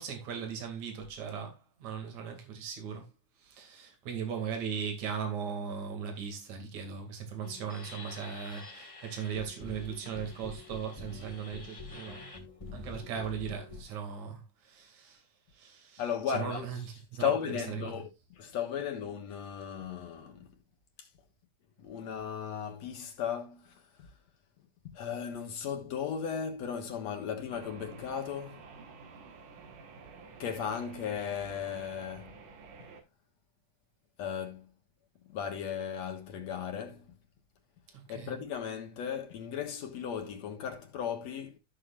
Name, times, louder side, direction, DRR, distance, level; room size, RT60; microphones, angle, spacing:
voice 1, 0.0-3.1 3.4-12.2 12.7-15.2 15.6-16.0 16.3-16.8 17.1-17.3 38.1-38.3, right 7 dB, 65° right, 3.5 m, -38 dB
sound 1, 7.4-13.8, left 2 dB, 20° left, 0.8 m, -45 dB
voice 2, 16.0-16.9 17.2-20.5 21.0-21.1 21.8-24.1 24.9-28.7 30.4-32.4 34.2-34.7 35.3-37.2 38.1-41.6, left 8 dB, 65° left, 2.5 m, -36 dB
sound 2, 27.5-33.0, right 4 dB, 80° right, 3.1 m, -50 dB
14.5 x 6.5 x 2.4 m
omnidirectional pair, 3.5 m